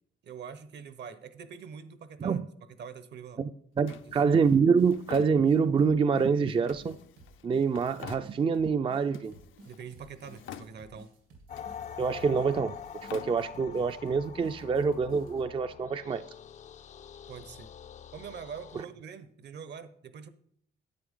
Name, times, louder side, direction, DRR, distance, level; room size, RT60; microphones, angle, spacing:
voice 1, 0.2-2.4 2.7-3.4 3.9-4.0 9.6-11.1 17.3-17.7 18.1-20.3, right 6 dB, 60° right, 13 dB, 0.9 m, -44 dB
voice 2, 3.8-7.0 7.4-9.3 12.0-12.7 13.0-16.2, right 5 dB, 25° right, 10 dB, 0.4 m, -26 dB
Drawer open or close, 3.9-5.9 6.7-8.8 9.1-9.9 10.2-11.1 11.5-13.9, left 10 dB, 80° left, 0.6 m, -49 dB
sound 1, 4.4-15.4, right 2 dB, 85° right, 2.3 m, -55 dB
sound 2, 11.5-18.8, left 8 dB, 35° left, 0.4 m, -45 dB
10.0 x 8.1 x 3.6 m, 0.64 s
cardioid pair, 90°, 20 cm